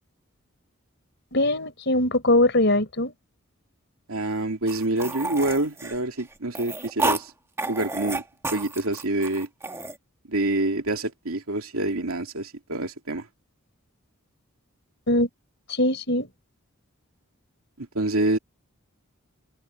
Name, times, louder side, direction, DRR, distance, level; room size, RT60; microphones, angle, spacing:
voice 1, 1.3-3.1 15.1-15.3 15.7-16.3, left 1 dB, 55° left, 5.1 m, -21 dB
voice 2, 4.1-7.3 7.7-8.2 8.5-9.5 10.3-13.3 17.8-18.4, right 2 dB, 90° right, 2.6 m, -26 dB
sound 1, 4.7-7.2 7.6-10.0, right 2 dB, 10° right, 1.4 m, -30 dB
head